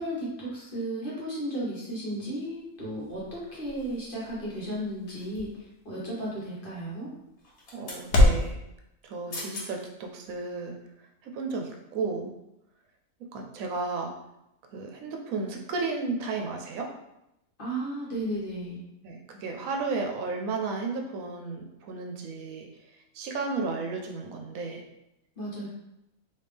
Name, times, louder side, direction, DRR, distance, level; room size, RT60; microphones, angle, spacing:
voice 1, 0.0-7.1 17.6-18.8 25.4-25.7, right 1 dB, 40° left, -7 dB, 1.2 m, -34 dB
sound 1, 2.2-8.5, left 1 dB, 65° left, 0.9 m, -30 dB
sound 2, 5.1-5.7 7.4-8.1 9.0-9.1 9.3-9.7 10.2-10.4, left 2 dB, 80° left, 1.6 m, -41 dB
voice 2, 7.7-8.6 9.0-10.8 11.2-12.3 13.3-14.1 14.7-16.9 19.0-22.7 23.1-24.8, right 4 dB, 80° right, 2 dB, 1.0 m, -33 dB
3.3 x 2.9 x 3.4 m, 0.87 s
omnidirectional pair, 1.5 m